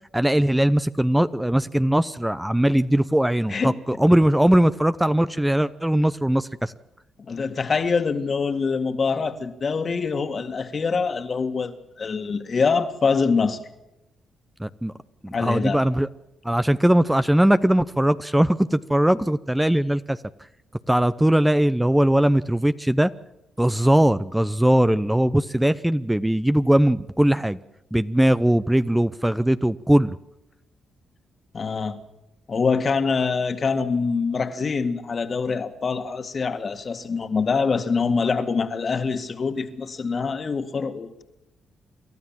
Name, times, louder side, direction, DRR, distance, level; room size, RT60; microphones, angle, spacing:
voice 1, 0.1-6.7 14.6-14.9 15.2-16.1 16.4-20.2 20.9-23.1 23.6-27.6 27.9-30.2, right 1 dB, 5° right, 0.7 m, -20 dB
voice 2, 7.2-11.7 12.0-13.6 15.3-15.8 31.5-32.0 32.5-41.2, left 5 dB, 50° left, 2.0 m, -24 dB
27.5 x 12.5 x 7.4 m
supercardioid pair, 55°, 0 cm